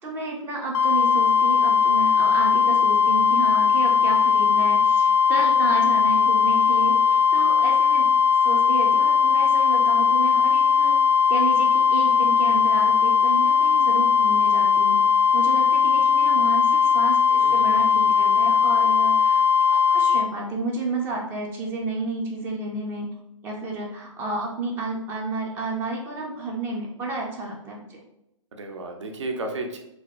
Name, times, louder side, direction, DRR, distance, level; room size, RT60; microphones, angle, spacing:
voice 1, 0.0-8.1 8.4-11.0 11.3-15.0 15.3-23.1 23.4-28.0, right 3 dB, 15° right, -1 dB, 0.3 m, -31 dB
sound 1, 0.7-20.3, left 6 dB, 55° left, 0.4 m, -19 dB
voice 2, 17.4-17.7 18.0-18.1 28.5-29.8, right 2 dB, 65° right, 3 dB, 0.6 m, -33 dB
2.7 x 2.5 x 3.1 m, 0.83 s
figure-of-eight pair, 120°, 17 cm